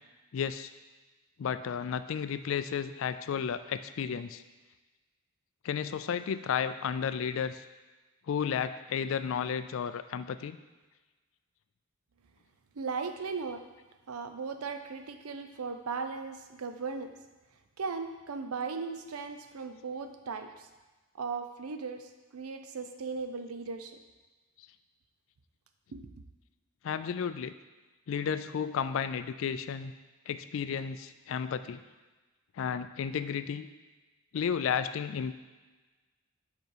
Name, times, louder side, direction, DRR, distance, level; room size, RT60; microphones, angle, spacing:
voice 1, 0.3-0.7 1.4-4.4 5.6-7.6 8.3-10.6 26.8-27.5 28.1-29.9 30.3-31.8 32.6-33.7 34.3-35.3, left 7 dB, 60° left, 12 dB, 0.3 m, -32 dB
voice 2, 12.7-13.6 14.1-17.1 17.8-20.7 21.1-24.0 25.9-26.1, right 4 dB, 80° right, 8 dB, 0.5 m, -37 dB
5.5 x 5.1 x 4.6 m, 1.2 s
head